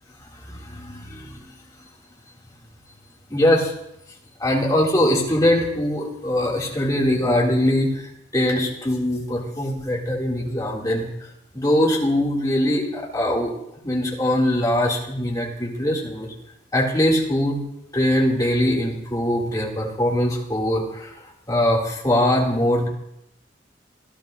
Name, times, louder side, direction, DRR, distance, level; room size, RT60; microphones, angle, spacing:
voice 1, 0.5-1.4 3.3-3.7 4.4-11.1 11.5-13.5 13.8-16.3 16.7-17.6 17.9-21.1 21.5-22.9, left 1 dB, 20° left, -3 dB, 2.4 m, -22 dB
26.0 x 11.5 x 2.6 m, 0.80 s
head